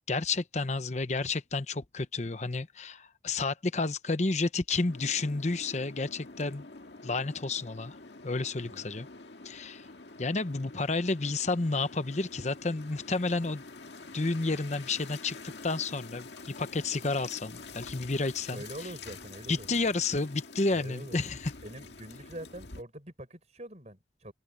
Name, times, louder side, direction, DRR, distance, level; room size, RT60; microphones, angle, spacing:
voice 1, 0.1-6.6 7.0-8.0 8.2-9.1 9.4-9.8 10.2-13.6 14.1-15.4 15.6-16.3 16.6-18.6 19.5-21.5, left 3 dB, 40° left, 0.9 m, -31 dB
sound 1, 4.9-22.8, left 3 dB, 80° left, 1.9 m, -47 dB
voice 2, 18.5-19.7 20.7-21.3 21.6-24.3, right 1 dB, 40° right, 5.8 m, -44 dB
head